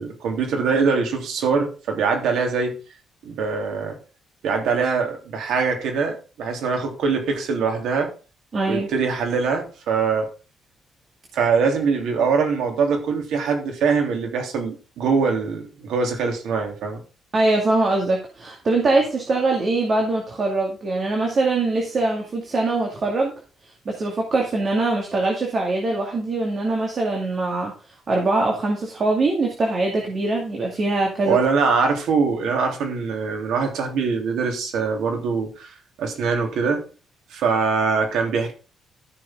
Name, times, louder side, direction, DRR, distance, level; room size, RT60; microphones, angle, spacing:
voice 1, 0.0-2.8 3.2-4.0 4.4-8.1 8.6-10.3 11.3-17.0 31.2-36.8 37.3-38.5, right 5 dB, 90° right, 3.2 m, -23 dB
voice 2, 8.5-8.9 17.3-23.3 23.9-27.7 28.1-31.4, right 2 dB, 35° right, 2.3 m, -22 dB
13.5 x 6.8 x 3.8 m
cardioid pair, 170°, 0 cm